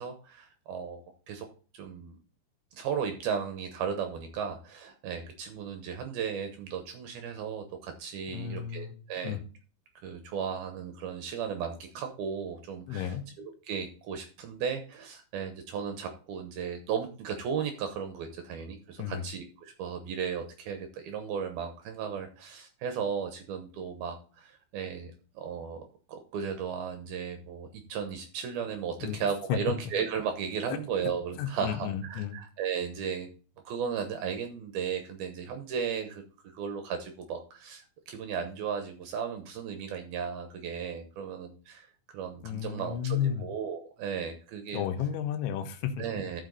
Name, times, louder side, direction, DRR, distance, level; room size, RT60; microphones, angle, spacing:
voice 1, 0.0-1.5 1.7-2.2 2.7-9.4 10.0-13.1 13.7-33.3 33.7-41.9 42.1-44.8 46.0-46.4, right 7 dB, 70° right, 6 dB, 2.4 m, -35 dB
voice 2, 8.3-8.9 9.2-9.4 12.9-13.2 19.0-19.3 29.0-29.2 29.5-29.6 31.4-32.4 42.4-43.5 44.7-46.0, left 9 dB, 85° left, 7 dB, 3.4 m, -32 dB
13.0 x 6.0 x 4.0 m, 0.38 s
omnidirectional pair, 5.3 m